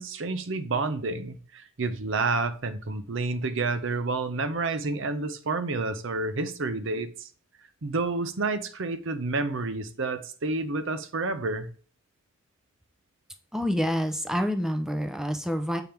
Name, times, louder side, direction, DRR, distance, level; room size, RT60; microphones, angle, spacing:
voice 1, 0.0-7.3 7.8-11.7, right 3 dB, 65° right, 0.7 m, -29 dB
voice 2, 13.5-15.8, equal, 5° right, 0.6 m, -27 dB
6.9 x 3.5 x 4.5 m
head